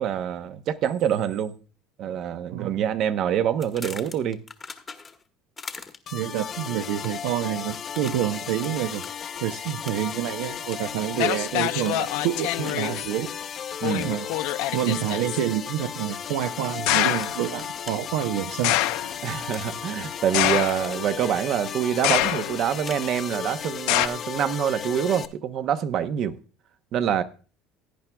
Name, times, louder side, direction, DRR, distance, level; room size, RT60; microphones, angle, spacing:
voice 1, 0.0-1.6 2.0-4.4 13.8-14.1 19.2-26.3 26.9-27.2, right 9 dB, 50° right, 0.8 m, -26 dB
sound 1, 3.6-5.3 5.6-6.2 6.9-7.3 7.9-8.7 9.0-9.2 9.8-10.2 10.6-11.3 11.7-12.2 12.6-12.9 13.9-14.2 14.7-14.9 16.2-16.7 17.2-18.0 19.5-20.2 20.5-21.0 22.1-23.1, left 4 dB, 20° left, 1.0 m, -42 dB
sound 2, 6.1-25.3, left 8 dB, 35° left, 0.6 m, -35 dB
voice 2, 6.1-9.0 9.4-13.3 14.0-14.3 14.7-18.8, right 12 dB, 85° right, 0.7 m, -28 dB
sound 3, 10.7-10.8 11.2-13.1 13.8-15.4 16.9-17.4 18.6-19.2 20.3-21.1 22.0-22.7 23.9-24.1, left 15 dB, 75° left, 0.6 m, -25 dB
16.5 x 9.8 x 2.3 m
cardioid pair, 140°, 0 cm